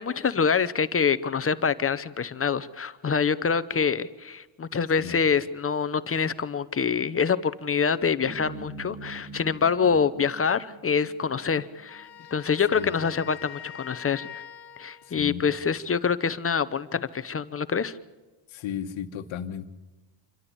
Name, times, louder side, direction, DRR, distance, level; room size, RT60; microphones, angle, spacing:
voice 1, 0.0-14.3 14.8-18.0, left 6 dB, 25° left, 13 dB, 0.8 m, -26 dB
sound 1, 8.2-12.6, right 3 dB, 25° right, 2.9 m, -44 dB
Wind instrument woodwind instrument, 11.9-15.2, left 9 dB, 50° left, 1.6 m, -44 dB
voice 2, 15.0-15.4 18.5-19.7, left 9 dB, 70° left, 5 dB, 1.4 m, -35 dB
27.0 x 13.0 x 8.2 m, 1.2 s
cardioid pair, 105°, 49 cm